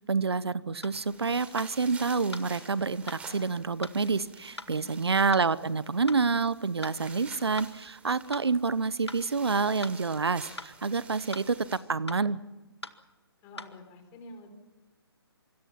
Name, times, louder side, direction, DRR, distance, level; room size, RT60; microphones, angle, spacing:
voice 1, 0.0-12.4, right 4 dB, 75° right, 18 dB, 0.9 m, -28 dB
sound 1, 0.8-1.0 1.6-1.7 2.3-2.5 3.1-3.2 3.8-4.0 4.6-4.7 5.3-5.5 6.1-6.2 6.8-7.0 7.6-7.7 8.3-8.5 9.1-9.2 9.8-10.0 10.6-10.7 11.3-11.5 12.1-12.2 12.8-13.0 13.6-13.7, left 2 dB, 85° left, 1.8 m, -41 dB
sound 2, 0.9-11.8, right 4 dB, 10° right, 3.7 m, -50 dB
voice 2, 4.6-5.2 13.4-14.5, left 2 dB, 20° left, 6 dB, 4.5 m, -48 dB
25.0 x 25.0 x 5.9 m, 1.1 s
figure-of-eight pair, 140°, 14 cm